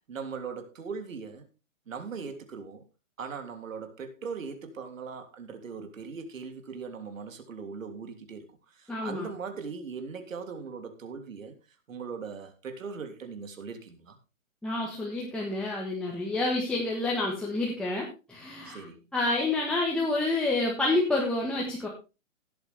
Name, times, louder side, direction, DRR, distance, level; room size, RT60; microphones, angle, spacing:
voice 1, 0.1-1.4 1.9-2.8 3.2-8.4 8.7-11.5 11.9-14.2 18.6-19.0, right 5 dB, 75° right, 3.3 m, -39 dB
voice 2, 8.9-9.3 14.6-18.8 19.1-21.9, left 2 dB, ahead, 1.4 m, -28 dB
17.0 x 8.1 x 3.5 m
hypercardioid pair, 155°, 40 cm